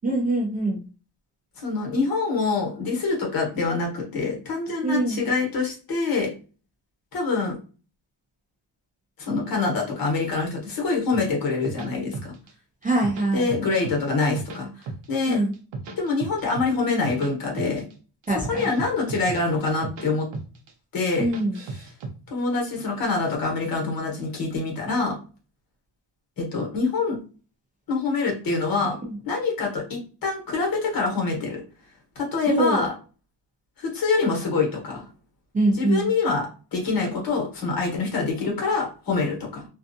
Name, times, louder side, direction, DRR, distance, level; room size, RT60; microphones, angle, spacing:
voice 1, 0.0-0.8 4.8-5.2 12.8-13.5 15.3-15.5 18.3-18.7 21.2-21.6 29.0-29.2 32.5-32.9 35.5-36.1, right 2 dB, 20° right, -2 dB, 0.4 m, -23 dB
voice 2, 1.6-6.3 7.1-7.6 9.2-12.3 13.3-14.7 15.1-15.4 16.0-17.8 18.5-20.3 20.9-21.3 22.3-25.2 26.4-27.2 27.9-29.0 29.2-31.6 32.1-32.9 33.8-35.0 35.8-39.7, left 4 dB, 50° left, -1 dB, 1.2 m, -25 dB
sound 1, 11.1-12.5 12.8-14.0 14.2-15.2 15.5-17.3 17.6-17.9 18.2-20.1 20.3-20.7 21.0-22.1, right 3 dB, 75° right, 0.8 m, -35 dB
2.5 x 2.3 x 2.6 m, 0.36 s
cardioid pair, 165°, 45 cm